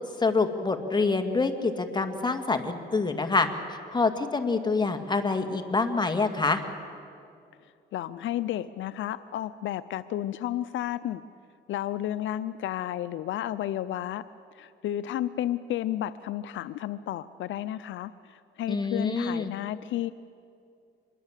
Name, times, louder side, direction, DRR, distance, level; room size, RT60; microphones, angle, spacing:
voice 1, 0.2-6.6 18.7-19.5, left 3 dB, 20° left, 6 dB, 2.1 m, -26 dB
voice 2, 7.6-11.2 11.7-14.2 14.5-20.1, left 12 dB, 75° left, 14 dB, 0.6 m, -32 dB
25.0 x 21.5 x 7.5 m, 2.5 s
cardioid pair, 90°, 20 cm